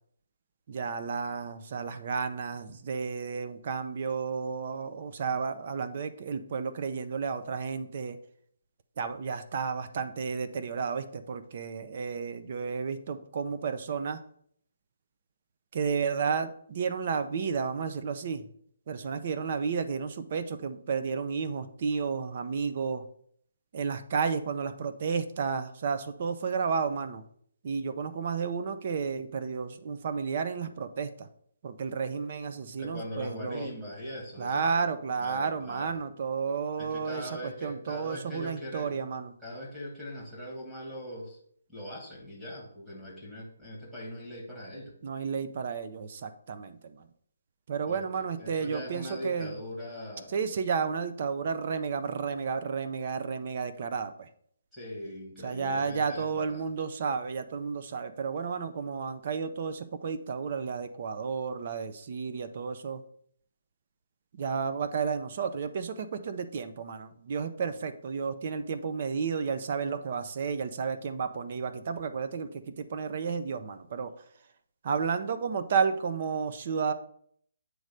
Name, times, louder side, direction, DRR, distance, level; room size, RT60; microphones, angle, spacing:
voice 1, 0.7-8.2 9.0-14.2 15.7-18.4 18.9-23.0 23.7-27.2 27.6-31.3 31.6-33.7 34.4-39.3 45.0-47.1 47.7-49.5 50.3-54.3 55.4-63.0 64.3-74.1 74.8-76.9, right 5 dB, 40° right, 10 dB, 0.5 m, -32 dB
voice 2, 32.8-34.9 35.2-36.0 36.8-39.0 39.4-41.4 41.7-44.9 47.9-50.4 54.7-56.7, equal, 5° right, -7 dB, 1.3 m, -41 dB
7.7 x 3.2 x 5.1 m, 0.64 s
hypercardioid pair, 165°, 0 cm